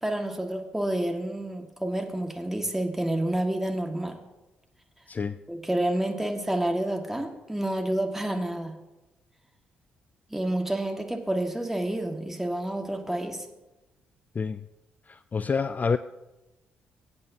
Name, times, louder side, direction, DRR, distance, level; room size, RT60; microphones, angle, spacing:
voice 1, 0.0-4.2 5.5-8.8 10.3-13.5, right 1 dB, 5° right, 1.9 m, -29 dB
voice 2, 15.1-16.0, left 5 dB, 35° left, 0.4 m, -28 dB
21.0 x 8.6 x 2.8 m
hypercardioid pair, 40°, 5 cm